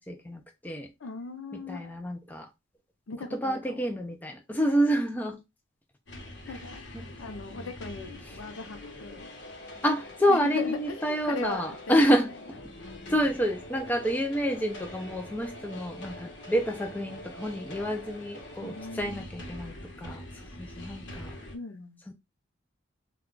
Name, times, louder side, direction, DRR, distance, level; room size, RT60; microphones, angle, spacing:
voice 1, 0.0-0.9 1.5-2.5 3.3-5.4 6.5-6.6 6.9-7.0 7.5-7.7 8.2-8.4 9.8-12.3 13.1-20.2 20.6-21.3 22.1-22.2, equal, 10° left, 0.4 m, -28 dB
voice 2, 1.0-1.9 3.1-3.9 6.5-6.8 7.2-9.3 10.3-12.2 18.6-19.3 21.5-22.0, left 4 dB, 85° left, 0.6 m, -38 dB
sound 1, 6.1-21.6, left 1 dB, 65° left, 0.9 m, -44 dB
2.3 x 2.2 x 3.7 m
head